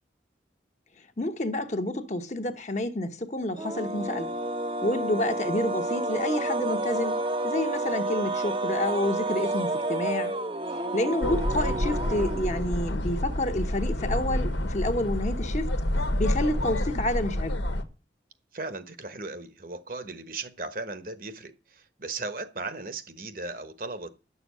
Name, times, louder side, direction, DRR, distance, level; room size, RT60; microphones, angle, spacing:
voice 1, 1.2-4.3 4.8-10.3 10.9-15.7 16.2-17.6, left 1 dB, 40° left, 1.1 m, -29 dB
sound 1, 3.5-12.9, right 2 dB, 30° right, 0.8 m, -30 dB
sound 2, 11.2-17.8, left 1 dB, 90° left, 1.5 m, -28 dB
voice 2, 18.5-24.2, right 3 dB, 50° right, 1.2 m, -37 dB
11.0 x 7.0 x 8.4 m
head